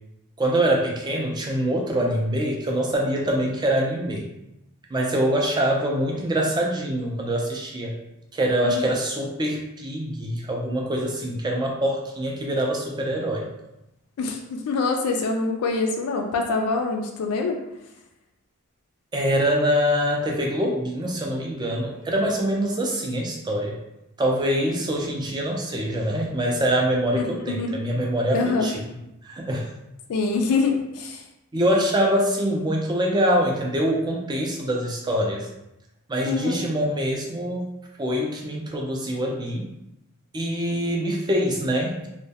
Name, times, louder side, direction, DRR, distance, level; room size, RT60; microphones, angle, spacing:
voice 1, 0.4-4.2 4.9-8.0 8.3-13.5 19.1-23.8 24.2-28.8 29.2-29.7 31.5-35.5 36.1-37.7 38.0-39.6 40.3-42.1, equal, 20° right, 0 dB, 0.3 m, -24 dB
voice 2, 14.2-17.6 27.1-27.8 28.3-28.7 30.1-31.2 36.3-36.6, left 3 dB, 80° left, 2 dB, 0.3 m, -25 dB
2.2 x 2.1 x 2.7 m, 0.89 s
head